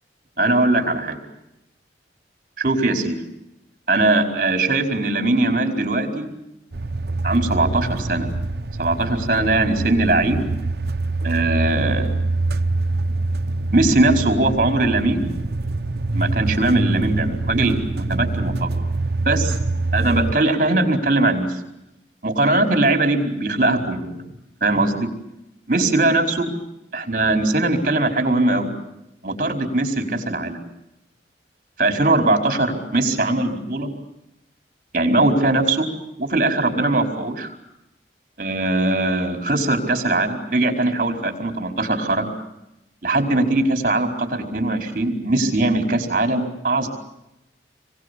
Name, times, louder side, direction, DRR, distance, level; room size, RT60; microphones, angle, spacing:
voice 1, 0.4-1.2 2.6-3.2 3.9-6.3 7.2-8.3 8.8-10.4 11.2-12.1 13.7-15.3 16.1-18.7 19.2-19.6 19.9-21.5 22.2-24.2 24.6-25.1 25.7-26.5 26.9-28.7 29.2-30.6 31.8-33.9 34.9-35.9 36.2-37.5 38.4-42.3 43.0-46.9, right 2 dB, 45° right, 5 dB, 4.8 m, -20 dB
sound 1, 6.7-20.3, right 2 dB, 60° right, 0.9 m, -25 dB
28.0 x 23.5 x 8.4 m, 0.88 s
head